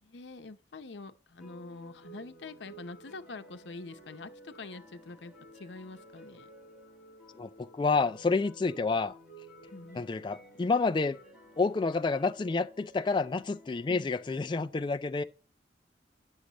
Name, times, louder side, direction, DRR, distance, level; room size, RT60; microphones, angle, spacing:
voice 1, 0.0-6.5 9.7-10.1 13.9-14.1, left 3 dB, 80° left, 0.8 m, -45 dB
sound 1, 1.4-14.6, right 1 dB, ahead, 3.2 m, -54 dB
voice 2, 7.4-9.1 9.9-11.2 11.6-15.2, left 4 dB, 25° left, 0.3 m, -29 dB
9.7 x 6.4 x 2.9 m
head